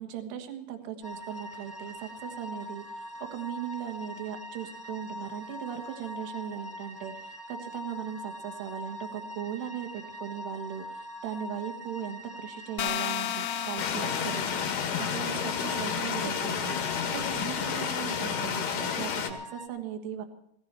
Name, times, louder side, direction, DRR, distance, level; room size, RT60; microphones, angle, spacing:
voice 1, 0.0-14.5 15.0-20.3, right 9 dB, 75° right, 7 dB, 3.6 m, -38 dB
sound 1, 1.0-19.7, left 1 dB, 5° right, 2.2 m, -42 dB
sound 2, 12.8-15.7, left 12 dB, 85° left, 3.1 m, -34 dB
sound 3, 13.8-19.3, left 7 dB, 65° left, 3.6 m, -31 dB
18.0 x 17.5 x 4.4 m, 0.74 s
omnidirectional pair, 5.1 m